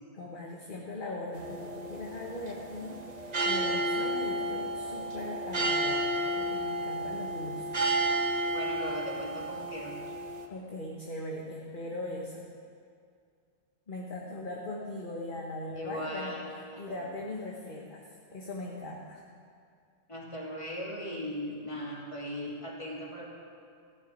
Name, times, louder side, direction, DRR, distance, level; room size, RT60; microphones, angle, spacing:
voice 1, 0.1-7.9 10.5-12.5 13.9-16.4 16.8-19.2, left 1 dB, 40° left, -2 dB, 1.4 m, -40 dB
sound 1, 1.3-10.5, right 1 dB, 35° right, 1.1 m, -32 dB
voice 2, 8.5-9.9 15.7-16.5 16.9-17.0 20.1-23.3, equal, 25° left, -4 dB, 2.8 m, -38 dB
15.0 x 7.2 x 9.5 m, 2.3 s
omnidirectional pair, 1.3 m